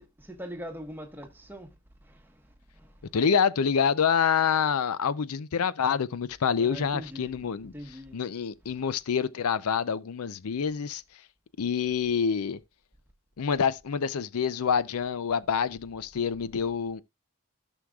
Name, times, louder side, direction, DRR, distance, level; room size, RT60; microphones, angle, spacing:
voice 1, 0.0-1.7 2.0-2.4 2.7-2.9 6.6-8.2, equal, 10° right, 1.2 m, -42 dB
voice 2, 3.1-7.7 8.1-11.0 11.6-12.6 13.4-17.0, left 6 dB, 80° left, 0.5 m, -27 dB
15.0 x 6.3 x 2.3 m
head